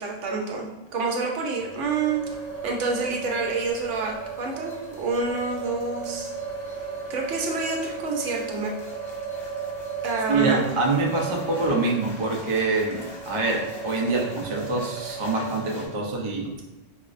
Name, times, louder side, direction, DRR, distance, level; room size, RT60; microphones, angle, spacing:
voice 1, 0.0-2.2 2.6-6.3 6.7-6.8 7.1-8.7 10.0-10.6, right 4 dB, 75° right, 0 dB, 1.0 m, -28 dB
sound 1, 1.5-15.4, right 3 dB, 50° left, 0.5 m, -39 dB
sound 2, 2.3-15.9, right 6 dB, 85° left, 1.2 m, -38 dB
voice 2, 10.3-16.5, right 3 dB, 45° right, -1 dB, 0.4 m, -25 dB
5.0 x 2.0 x 2.4 m, 1.1 s
omnidirectional pair, 1.2 m